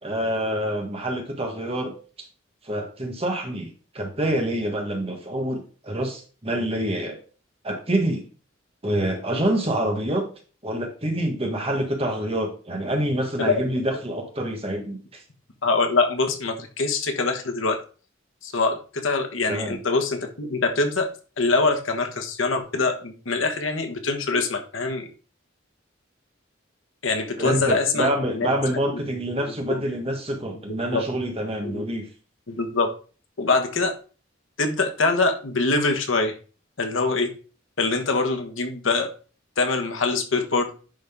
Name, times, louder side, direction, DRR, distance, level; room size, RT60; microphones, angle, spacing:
voice 1, 0.0-1.9 2.6-3.7 3.9-7.2 7.6-8.2 8.8-10.3 10.6-15.2 19.5-19.8 27.4-32.1, right 1 dB, 30° right, 2 dB, 1.5 m, -26 dB
voice 2, 13.4-13.7 15.6-17.8 18.4-21.1 21.4-25.1 27.0-28.1 28.4-28.5 29.4-29.5 30.7-31.0 31.6-31.8 32.5-32.9 33.4-33.9 34.6-36.3 36.8-37.3 37.8-39.1 39.6-40.7, left 3 dB, 80° left, 5 dB, 1.3 m, -24 dB
10.5 x 4.0 x 3.6 m, 0.37 s
head